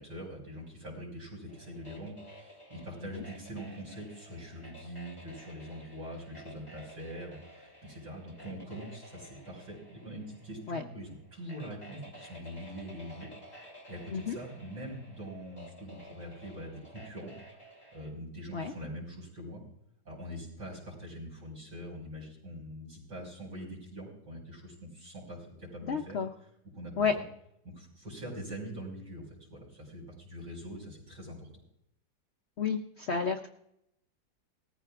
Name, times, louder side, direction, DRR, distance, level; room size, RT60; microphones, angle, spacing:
voice 1, 0.0-13.3 13.9-17.3 17.9-19.6 20.0-26.2 26.7-27.2 27.6-31.5, equal, 60° right, -4 dB, 6.1 m, -43 dB
sound 1, 1.5-18.1, equal, 15° left, 3.1 m, -53 dB
voice 2, 25.9-26.3 27.0-27.1 32.6-33.5, left 6 dB, 65° left, 6 dB, 0.6 m, -31 dB
19.0 x 14.5 x 2.4 m, 0.79 s
omnidirectional pair, 2.0 m